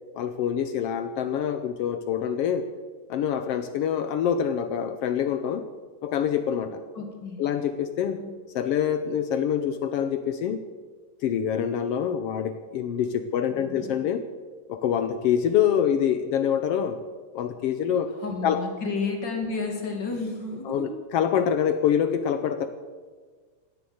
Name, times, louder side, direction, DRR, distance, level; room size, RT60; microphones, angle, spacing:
voice 1, 0.1-2.7 3.1-5.6 6.0-6.8 7.4-8.2 8.5-10.6 11.2-14.2 14.7-17.0 17.3-18.1 18.4-18.6 20.7-22.7, left 8 dB, 85° left, 9 dB, 1.3 m, -25 dB
voice 2, 6.9-7.5 8.2-8.3 13.5-14.0 15.7-15.8 18.1-20.9, left 3 dB, 35° left, 3 dB, 2.8 m, -32 dB
17.0 x 10.5 x 7.8 m, 1.5 s
omnidirectional pair, 3.6 m